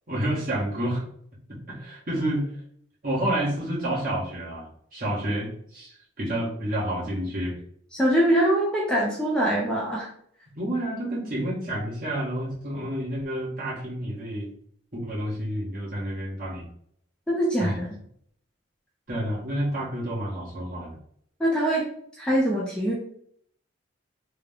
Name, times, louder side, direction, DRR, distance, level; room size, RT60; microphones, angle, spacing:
voice 1, 0.1-1.0 1.7-2.5 3.0-7.5 10.6-14.5 14.9-16.6 17.6-17.8 19.1-21.0, right 1 dB, 45° right, -7 dB, 1.4 m, -29 dB
voice 2, 7.9-10.1 17.3-17.9 21.4-21.9 22.2-22.9, right 1 dB, 5° left, -4 dB, 0.6 m, -23 dB
3.5 x 2.3 x 3.5 m, 0.65 s
head